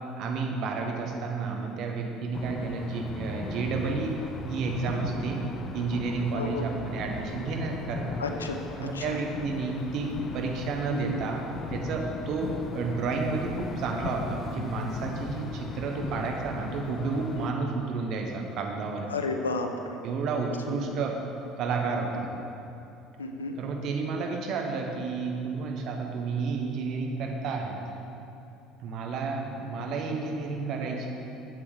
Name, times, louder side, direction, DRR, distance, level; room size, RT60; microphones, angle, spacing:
voice 1, 0.2-4.2 4.4-5.5 5.7-8.2 8.8-11.4 11.7-19.1 20.0-21.1 21.6-22.4 23.6-27.7 28.8-31.1, right 4 dB, 55° right, 2 dB, 1.1 m, -31 dB
sound 1, 2.3-17.5, left 5 dB, 40° left, 0.6 m, -38 dB
voice 2, 6.4-6.7 8.2-8.6 8.9-9.2 10.9-11.2 19.1-20.0 20.7-20.9 23.2-23.6, left 3 dB, 90° left, 5 dB, 0.6 m, -32 dB
7.6 x 7.5 x 5.0 m, 2.8 s
hypercardioid pair, 65°, 0 cm